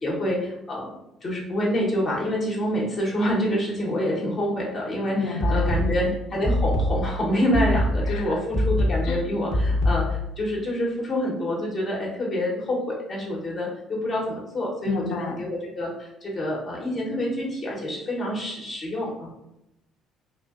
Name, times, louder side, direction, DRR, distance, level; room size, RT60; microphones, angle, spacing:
voice 1, 0.0-0.9 1.2-19.3, equal, 45° left, -4 dB, 0.8 m, -27 dB
voice 2, 5.2-6.1 8.1-8.4 9.0-9.2 14.9-15.5, left 5 dB, 70° left, 4 dB, 0.4 m, -31 dB
sound 1, 5.4-10.4, left 1 dB, 20° left, 0.7 m, -24 dB
2.5 x 2.1 x 2.4 m, 0.86 s
hypercardioid pair, 65°, 0 cm